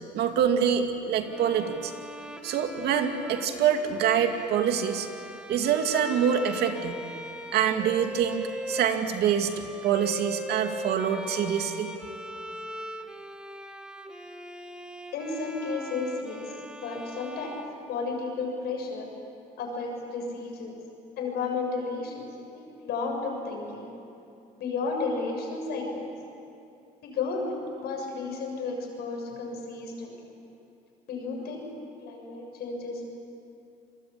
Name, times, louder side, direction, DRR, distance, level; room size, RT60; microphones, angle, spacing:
voice 1, 0.1-1.9 2.4-5.1 5.5-7.0 7.5-11.9, right 8 dB, 75° right, 5 dB, 2.4 m, -25 dB
Bowed string instrument, 1.2-18.5, equal, 5° right, 1.4 m, -41 dB
voice 2, 15.1-16.5 16.8-17.5 17.9-19.1 19.6-20.8 21.2-23.9 24.6-26.1 27.0-30.2 31.1-31.7 32.0-33.1, left 4 dB, 75° left, 1 dB, 7.1 m, -33 dB
27.5 x 22.0 x 8.6 m, 2.7 s
cardioid pair, 110°, 17 cm